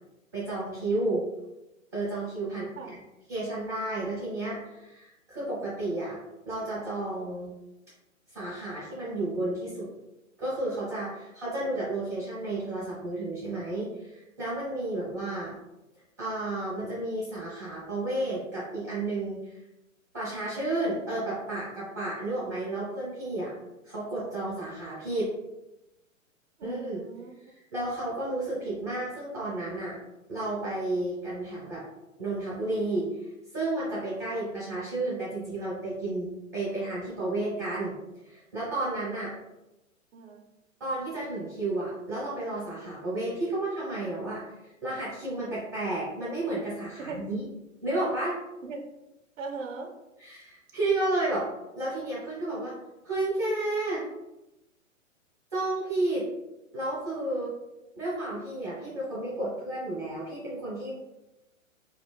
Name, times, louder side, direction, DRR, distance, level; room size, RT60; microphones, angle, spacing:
voice 1, 0.3-1.2 1.9-3.0 3.3-6.2 6.4-7.5 8.3-9.9 10.4-15.5 16.2-19.6 20.1-23.6 23.8-25.3 26.6-27.0 27.5-30.0 30.3-31.8 32.2-33.1 33.5-37.9 38.2-39.3 40.8-47.4 47.8-48.4 50.2-51.5 51.8-52.7 53.0-54.0 55.5-56.3 56.7-57.5 57.9-61.0, right 2 dB, 10° right, -10 dB, 0.3 m, -32 dB
voice 2, 26.6-27.3 40.1-40.4 47.0-47.2 48.6-48.9 49.4-49.9, right 4 dB, 70° right, 1 dB, 0.6 m, -39 dB
2.9 x 2.1 x 2.2 m, 0.95 s
figure-of-eight pair, 120°, 41 cm